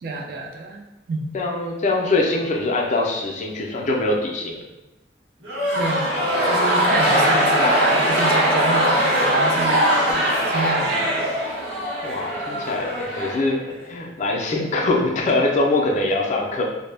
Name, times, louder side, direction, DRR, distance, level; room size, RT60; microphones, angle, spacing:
voice 1, 0.0-0.8 1.1-1.3 5.7-11.2, right 3 dB, 55° right, 1 dB, 0.4 m, -28 dB
voice 2, 1.3-4.6 12.0-16.6, left 2 dB, 40° left, 0 dB, 0.4 m, -23 dB
sound 1, 5.4-13.9, equal, 70° right, 0.9 m, -21 dB
2.1 x 2.1 x 3.2 m, 0.97 s
head